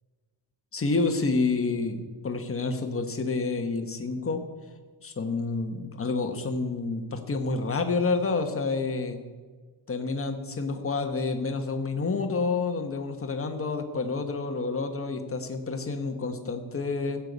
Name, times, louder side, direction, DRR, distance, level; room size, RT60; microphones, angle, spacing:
voice 1, 0.7-4.4 5.0-9.2 9.9-17.2, left 3 dB, 30° left, 6 dB, 1.2 m, -29 dB
16.0 x 5.8 x 8.0 m, 1.4 s
wide cardioid pair, 170°, 48 cm